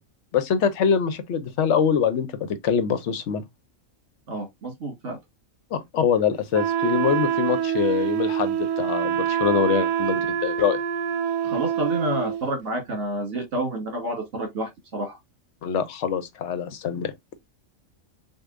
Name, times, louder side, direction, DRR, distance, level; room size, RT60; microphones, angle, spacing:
voice 1, 0.3-3.4 5.7-10.8 15.6-17.1, left 7 dB, 65° left, 0.9 m, -24 dB
voice 2, 4.3-5.2 11.4-15.2, right 1 dB, 60° right, 2.0 m, -29 dB
Wind instrument woodwind instrument, 6.5-12.5, right 10 dB, 85° right, 1.0 m, -25 dB
6.4 x 2.4 x 2.4 m
omnidirectional pair, 1.4 m